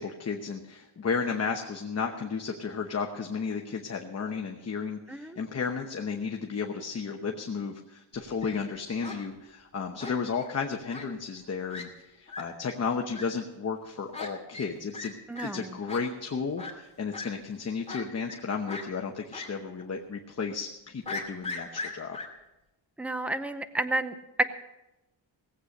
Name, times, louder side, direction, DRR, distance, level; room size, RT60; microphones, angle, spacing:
voice 1, 0.0-22.2, left 5 dB, 35° left, 2 dB, 1.0 m, -33 dB
voice 2, 5.1-5.4 15.3-15.8 23.0-24.4, right 1 dB, 5° right, 10 dB, 0.6 m, -31 dB
Fowl, 8.1-8.5 9.0-9.2 10.0-10.5 10.9-11.1 11.4-11.5 11.7-11.8 12.3-12.4 13.1-13.2 14.1-14.3 14.5-14.7 14.9-15.1 15.4-15.5 15.9-16.0 16.6-16.7 17.1-17.3 17.9-18.4 18.7-18.8 19.3-19.5 19.8-19.9 21.1-22.3, left 3 dB, 15° left, 2.3 m, -38 dB
18.0 x 8.3 x 6.4 m, 0.97 s
wide cardioid pair, 155°, 47 cm